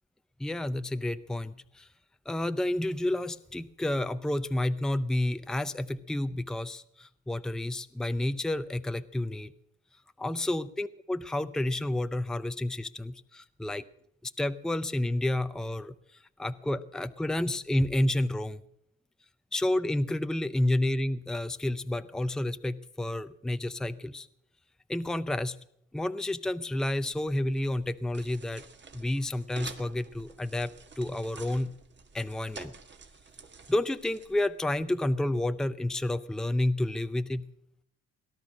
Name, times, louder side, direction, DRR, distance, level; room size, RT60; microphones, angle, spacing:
voice 1, 0.4-1.9 2.3-9.5 10.2-13.8 14.2-15.9 16.4-18.6 19.5-24.3 24.9-25.6 25.9-28.6 28.9-31.7 32.1-32.7 33.7-37.4, left 1 dB, ahead, 11 dB, 0.6 m, -30 dB
sound 1, 26.8-34.8, right 4 dB, 35° right, 1.7 m, -50 dB
18.0 x 11.5 x 6.3 m, 0.74 s
cardioid pair, 90°, 30 cm